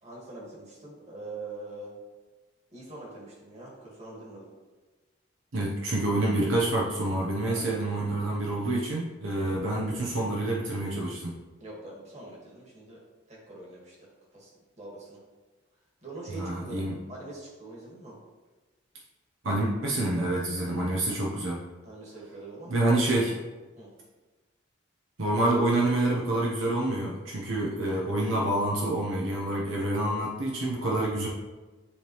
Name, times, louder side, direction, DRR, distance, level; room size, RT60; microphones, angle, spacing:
voice 1, 0.0-1.9 2.7-4.5 7.5-7.8 11.6-13.0 13.3-15.2 16.0-18.2 21.8-23.1 23.8-23.9, right 2 dB, 35° right, -5 dB, 1.9 m, -43 dB
voice 2, 5.5-11.3 16.3-16.9 19.4-21.6 22.7-23.3 25.2-31.3, right 1 dB, 75° right, -3 dB, 1.0 m, -27 dB
9.9 x 3.5 x 3.1 m, 1.3 s
head